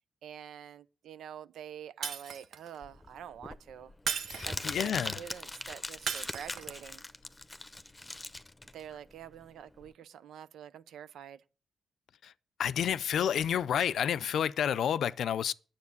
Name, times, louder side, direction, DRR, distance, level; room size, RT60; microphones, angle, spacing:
voice 1, 0.2-3.9 4.4-7.0 8.7-11.4, right 9 dB, 85° right, 0.6 m, -47 dB
Shatter, 2.0-2.8 4.1-4.9 6.1-6.8, right 6 dB, 70° right, 1.0 m, -36 dB
Crumpling crinkling, 2.8-9.9, left 2 dB, 15° left, 0.8 m, -41 dB
voice 2, 4.3-5.2 12.2-12.3 12.6-15.5, left 9 dB, 80° left, 0.5 m, -30 dB
9.6 x 7.6 x 8.3 m
cardioid pair, 80°, 0 cm